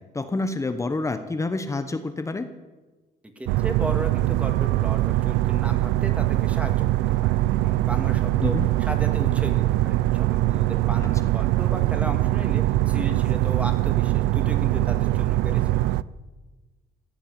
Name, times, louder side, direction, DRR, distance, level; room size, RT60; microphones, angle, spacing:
voice 1, 0.1-2.5 8.4-8.7, left 3 dB, 15° left, 9 dB, 0.9 m, -28 dB
voice 2, 3.4-15.6, right 1 dB, 10° right, 5 dB, 2.0 m, -35 dB
sound 1, 3.5-16.0, right 16 dB, 85° right, 0.4 m, -22 dB
14.5 x 8.6 x 8.0 m, 1.2 s
cardioid pair, 110°, 17 cm